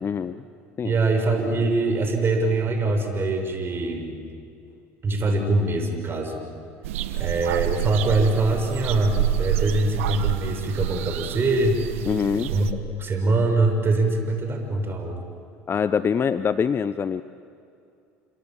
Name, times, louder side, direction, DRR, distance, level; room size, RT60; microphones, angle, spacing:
voice 1, 0.0-0.4 0.8-0.9 12.1-12.5 15.7-17.2, left 6 dB, 35° left, 14 dB, 0.8 m, -24 dB
voice 2, 0.8-4.2 5.0-6.4 7.2-11.8 12.5-12.7 13.0-15.2, right 2 dB, 35° right, 4 dB, 5.8 m, -23 dB
sound 1, 6.8-12.7, right 12 dB, 80° right, 1.3 m, -28 dB
29.0 x 26.5 x 7.4 m, 2.5 s
hypercardioid pair, 70°, 7 cm